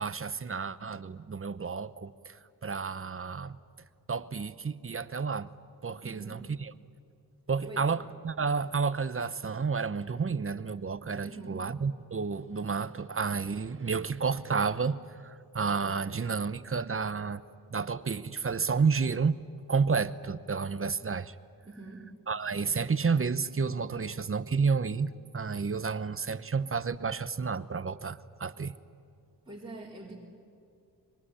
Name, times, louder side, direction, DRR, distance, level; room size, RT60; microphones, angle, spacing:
voice 1, 0.0-2.4 2.6-3.6 4.1-5.5 5.8-6.7 7.5-17.4 17.7-19.4 19.7-21.4 22.3-28.7, right 5 dB, 30° right, 15 dB, 0.9 m, -31 dB
voice 2, 6.0-6.5 7.7-7.9 11.2-11.7 21.6-22.0 29.5-30.2, right 2 dB, 10° right, -5 dB, 4.3 m, -44 dB
23.5 x 22.5 x 10.0 m, 2.4 s
cardioid pair, 90°, 41 cm